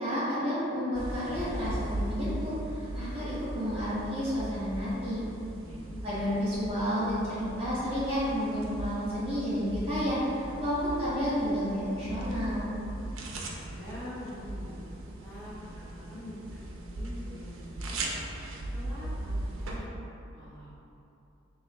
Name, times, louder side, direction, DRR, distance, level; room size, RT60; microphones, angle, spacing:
voice 1, 0.0-5.2 6.0-12.7, equal, 30° right, -11 dB, 1.3 m, -31 dB
sound 1, 0.9-19.8, right 1 dB, 90° right, 0.5 m, -39 dB
voice 2, 5.6-5.9 13.4-18.1 18.7-19.9 20.3-20.7, equal, 20° left, -16 dB, 1.3 m, -45 dB
3.8 x 2.8 x 3.1 m, 2.8 s
head